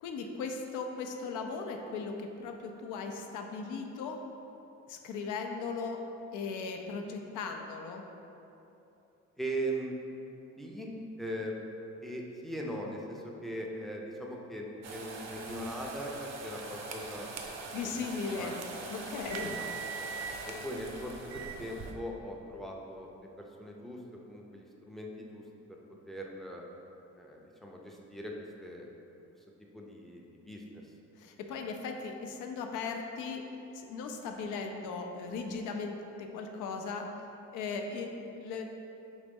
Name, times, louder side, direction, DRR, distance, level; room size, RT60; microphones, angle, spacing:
voice 1, 0.0-4.2 4.9-6.0 6.3-8.0 17.7-18.6 18.9-19.6 31.2-33.4 33.7-37.1 37.5-38.6, left 4 dB, 85° left, 4 dB, 0.5 m, -38 dB
voice 2, 9.4-9.9 10.6-10.9 11.2-11.5 12.0-17.3 18.4-19.7 20.5-23.1 23.6-24.0 24.3-25.4 26.1-26.6 27.2-28.3 28.6-28.9 29.7-30.8, right 1 dB, ahead, -1 dB, 0.4 m, -40 dB
sound 1, 14.8-21.9, right 4 dB, 60° right, 0.5 m, -41 dB
3.9 x 3.0 x 3.6 m, 2.9 s
cardioid pair, 90°, 30 cm